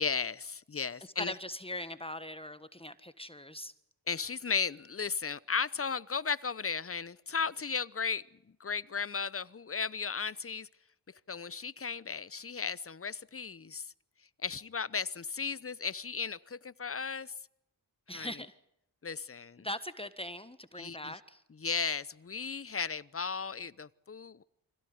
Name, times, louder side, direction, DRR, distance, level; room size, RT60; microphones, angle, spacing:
voice 1, 0.0-1.3 4.1-10.7 11.3-13.9 14.4-17.3 18.1-18.3 19.0-19.7 20.8-21.2 21.6-24.4, left 5 dB, 30° left, 0.9 m, -35 dB
voice 2, 1.0-3.7 18.1-18.5 19.6-21.4, left 1 dB, 15° left, 1.5 m, -41 dB
25.5 x 16.5 x 9.6 m
cardioid pair, 55°, 42 cm